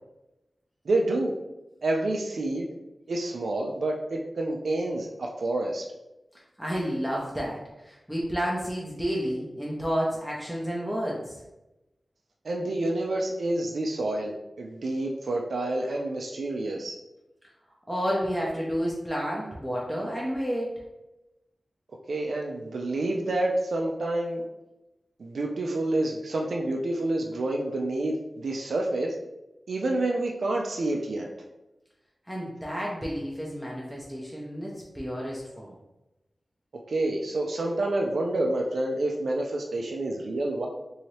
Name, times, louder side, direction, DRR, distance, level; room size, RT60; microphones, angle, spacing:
voice 1, 0.9-1.4 1.8-2.7 3.1-5.8 12.4-17.0 22.1-24.4 25.2-29.2 29.7-31.3 36.9-40.7, right 2 dB, 85° right, 0 dB, 0.3 m, -28 dB
voice 2, 6.6-11.4 17.9-20.8 32.3-35.7, equal, ahead, -4 dB, 0.6 m, -31 dB
2.8 x 2.7 x 3.1 m, 0.97 s
wide cardioid pair, 80°, 0 cm